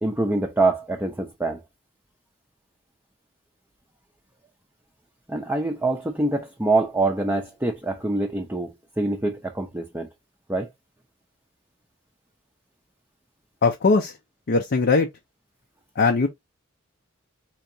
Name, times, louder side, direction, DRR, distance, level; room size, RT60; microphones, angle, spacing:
voice 1, 0.0-1.6 5.3-10.1 10.5-10.7, right 2 dB, 10° right, 0.5 m, -25 dB
voice 2, 13.6-14.2 14.5-15.1 16.0-16.3, left 4 dB, 50° left, 0.5 m, -20 dB
4.5 x 2.9 x 2.6 m
head